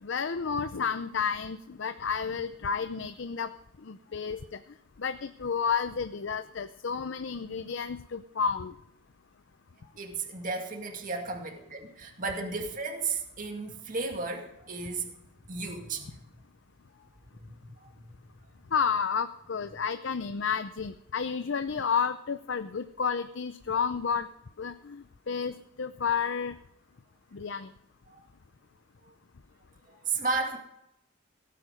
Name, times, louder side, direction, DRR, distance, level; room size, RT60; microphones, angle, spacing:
voice 1, 0.0-3.5 3.8-4.6 5.0-8.7 18.7-24.3 24.6-26.6 27.3-27.7, left 6 dB, 70° left, 11 dB, 0.6 m, -31 dB
voice 2, 9.8-15.1 15.5-16.2 17.0-17.1 17.8-17.9 28.1-28.2 29.1-29.2 30.1-30.6, right 4 dB, 45° right, 2 dB, 2.2 m, -34 dB
17.0 x 9.3 x 5.3 m, 0.78 s
head